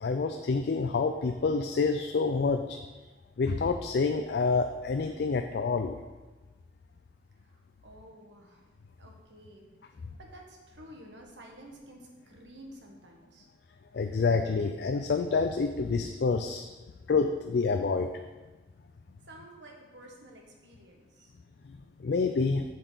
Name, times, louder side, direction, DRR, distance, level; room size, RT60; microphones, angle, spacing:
voice 1, 0.0-2.8 3.4-6.0 13.9-16.6 17.1-18.1 22.0-22.6, left 4 dB, 65° left, 6 dB, 0.4 m, -27 dB
voice 2, 7.8-8.6 9.0-9.7 10.2-13.5 19.3-21.3, right 1 dB, 90° right, 1 dB, 1.5 m, -51 dB
7.6 x 7.0 x 3.9 m, 1.2 s
head